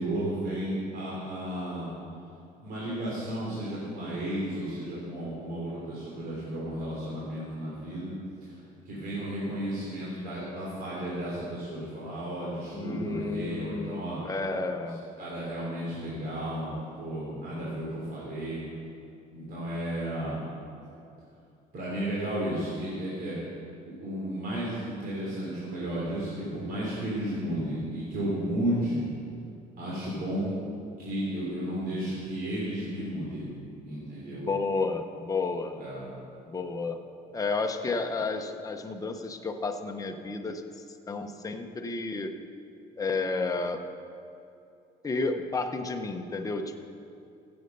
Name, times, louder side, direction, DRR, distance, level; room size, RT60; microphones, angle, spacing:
voice 1, 0.0-1.9 2.6-8.1 8.4-8.5 8.8-14.2 15.2-18.6 19.3-20.4 21.7-23.4 24.0-29.1 29.8-30.6 31.0-33.5 33.8-34.5 35.8-36.1, right 1 dB, 60° right, -7 dB, 3.3 m, -33 dB
voice 2, 12.7-15.0 34.3-35.8 36.5-37.0 37.3-40.6 41.1-42.3 43.0-43.8 45.0-46.8, left 3 dB, 20° left, 4 dB, 0.9 m, -31 dB
15.0 x 7.9 x 5.4 m, 2.6 s
cardioid pair, 110°, 17 cm